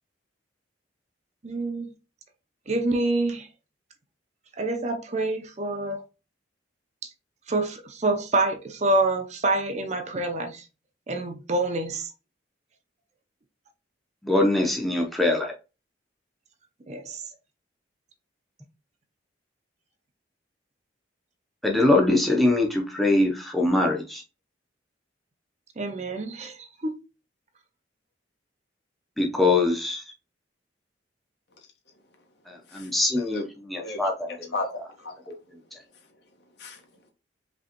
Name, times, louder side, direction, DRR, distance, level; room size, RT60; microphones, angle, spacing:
voice 1, 1.4-1.9 2.7-3.5 4.6-6.0 7.0-7.1 7.5-10.6 11.1-12.1 16.9-17.3 25.8-26.9, right 2 dB, 35° right, 0.6 m, -27 dB
voice 2, 14.2-15.5 21.6-24.2 29.2-30.0 32.5-34.3, left 2 dB, ahead, 0.7 m, -23 dB
voice 3, 33.8-35.3 36.6-36.8, left 2 dB, 60° left, 1.2 m, -35 dB
5.2 x 3.0 x 2.9 m
head